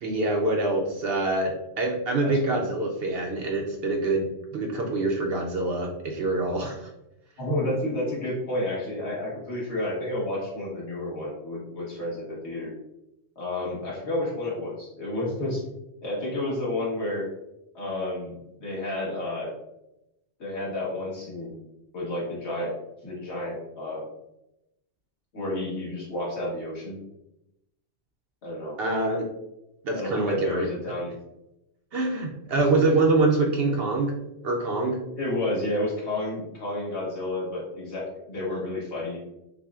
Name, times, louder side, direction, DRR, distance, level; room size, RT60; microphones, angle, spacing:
voice 1, 0.0-6.9 28.8-29.3 29.8-30.7 31.9-34.1 34.4-35.0, right 2 dB, 65° right, 1 dB, 0.7 m, -25 dB
voice 2, 2.2-2.7 7.4-12.7 13.3-15.6 16.0-17.3 17.7-19.5 20.4-21.6 21.9-22.7 23.0-24.0 25.3-27.0 28.4-28.8 29.9-31.1 32.5-32.7 35.2-39.2, left 1 dB, 60° left, -6 dB, 1.5 m, -31 dB
5.8 x 2.1 x 2.3 m, 0.89 s
omnidirectional pair, 1.3 m